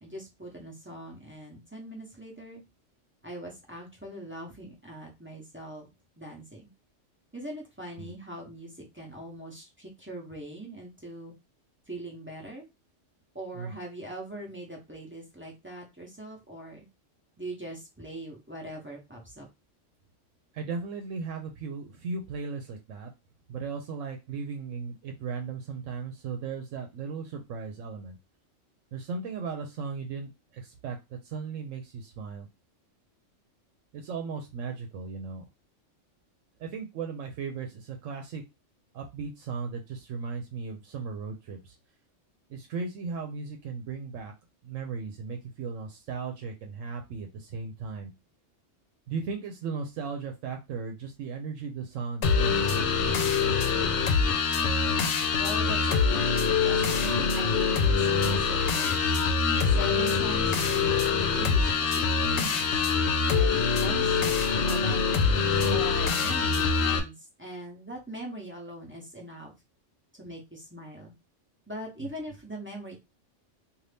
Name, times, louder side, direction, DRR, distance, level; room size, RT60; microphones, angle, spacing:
voice 1, 0.0-2.6 3.2-5.9 6.2-6.7 7.3-11.3 11.9-12.7 13.3-16.8 17.4-19.5 55.4-59.0 59.6-62.8 63.3-64.4 64.6-65.0 65.5-69.5 70.2-71.1 71.7-73.0, right 1 dB, 10° right, -1 dB, 0.7 m, -41 dB
voice 2, 20.5-23.1 23.5-28.2 28.9-32.5 33.9-35.4 36.6-38.4 38.9-41.8 42.5-44.3 44.6-48.1 49.1-53.2 72.0-72.1, right 5 dB, 80° right, 3 dB, 1.0 m, -36 dB
sound 1, 52.2-67.0, left 5 dB, 70° left, 0.9 m, -24 dB
2.7 x 2.5 x 3.3 m, 0.23 s
omnidirectional pair, 1.3 m